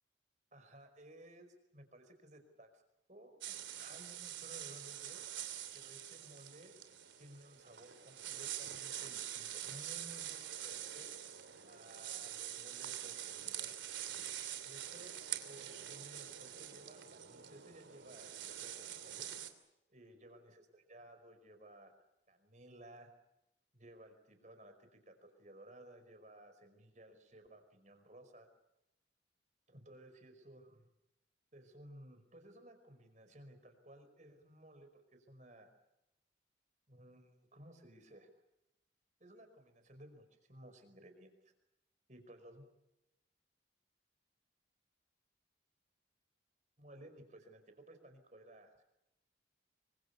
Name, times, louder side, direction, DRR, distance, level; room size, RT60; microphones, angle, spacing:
voice 1, 0.5-2.8 3.1-5.4 5.7-6.7 7.2-11.1 11.6-13.9 14.6-19.3 19.9-21.9 22.3-23.1 23.7-28.5 29.7-30.9 31.5-35.7 36.9-38.3 39.2-41.3 42.1-42.7 46.8-48.8, right 1 dB, 40° right, 7 dB, 5.0 m, -57 dB
sound 1, 3.4-19.5, right 11 dB, 80° right, 3.0 m, -45 dB
27.0 x 25.0 x 7.0 m, 0.87 s
head